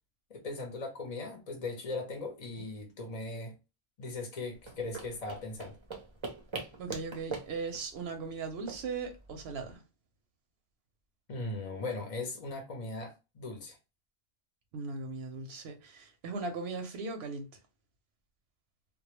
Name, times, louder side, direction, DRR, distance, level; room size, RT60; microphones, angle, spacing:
voice 1, 0.3-3.5 4.0-5.8 11.3-13.8, left 2 dB, 45° left, 0.6 m, -39 dB
sound 1, 4.5-9.7, right 4 dB, 40° right, 0.5 m, -43 dB
voice 2, 6.8-9.8 14.7-17.5, right 4 dB, 85° right, 0.8 m, -38 dB
2.1 x 2.1 x 2.9 m
omnidirectional pair, 1.0 m